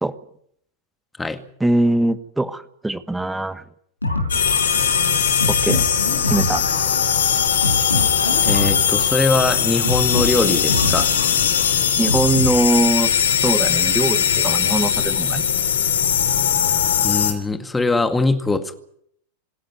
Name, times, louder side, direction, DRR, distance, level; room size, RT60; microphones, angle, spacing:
voice 1, 1.6-3.6 5.5-5.9 6.3-6.7 12.0-15.4, right 2 dB, 5° right, 15 dB, 1.3 m, -22 dB
sound 1, 4.0-13.0, left 2 dB, 85° left, 5.0 m, -26 dB
sound 2, 4.3-17.3, left 8 dB, 65° left, 3.3 m, -20 dB
voice 2, 8.4-11.1 17.0-18.7, left 3 dB, 10° left, 9 dB, 2.0 m, -21 dB
26.5 x 11.5 x 9.5 m, 0.69 s
figure-of-eight pair, 90°, 0 cm